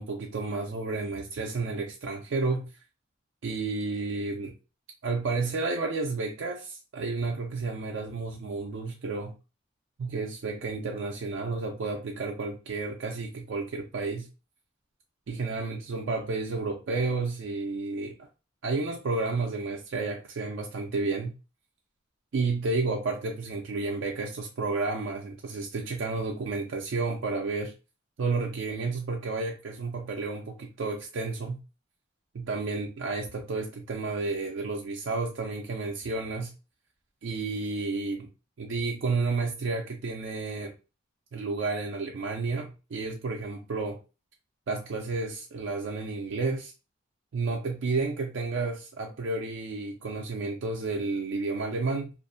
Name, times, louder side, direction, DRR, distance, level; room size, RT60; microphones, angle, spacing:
voice 1, 0.0-2.7 3.4-4.5 5.0-9.3 10.0-14.3 15.3-18.3 18.6-21.3 22.3-27.7 28.2-31.6 32.3-36.5 37.2-38.3 38.6-40.7 41.3-44.0 44.7-46.7 47.3-52.1, right 3 dB, 70° right, 0.4 m, -31 dB
2.5 x 2.0 x 2.5 m
head